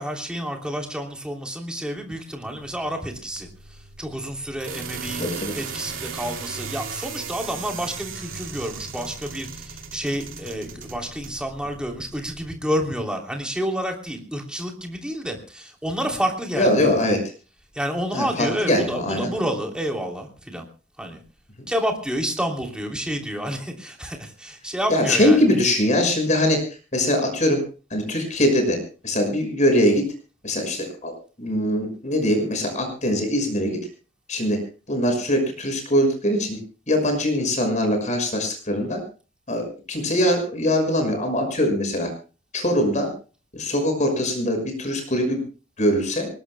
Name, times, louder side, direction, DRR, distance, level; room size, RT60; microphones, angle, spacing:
voice 1, 0.0-5.2 5.5-16.9 17.7-20.6 21.0-21.2 21.7-25.4, equal, 5° right, 2 dB, 3.1 m, -29 dB
sound 1, 2.4-12.5, right 5 dB, 70° right, 2.8 m, -37 dB
voice 2, 5.2-5.5 16.5-17.2 18.1-19.3 21.6-21.7 24.9-26.6 26.9-27.6 27.9-28.8 29.0-30.0 30.4-31.1 31.4-33.8 34.3-34.6 34.9-36.6 36.9-39.0 39.5-42.1 42.5-43.1 43.5-45.4 45.8-46.3, left 1 dB, 35° left, 5 dB, 6.0 m, -22 dB
24.0 x 20.0 x 2.2 m, 0.36 s
head